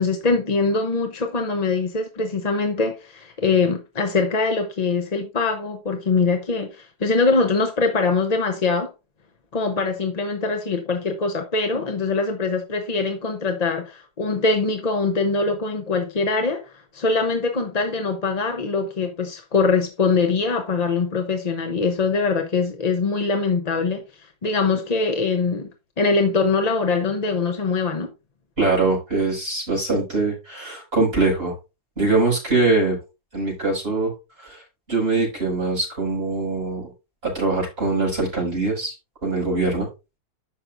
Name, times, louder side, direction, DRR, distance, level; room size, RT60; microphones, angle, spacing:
voice 1, 0.0-8.9 9.5-24.0 24.4-25.7 26.0-28.1, left 4 dB, 35° left, 0.7 m, -23 dB
voice 2, 28.6-31.5 32.0-33.0 33.3-34.1 34.4-34.6 34.9-36.9 37.2-38.9 39.2-39.9, right 3 dB, 35° right, 5.5 m, -22 dB
13.0 x 5.7 x 2.6 m
omnidirectional pair, 1.7 m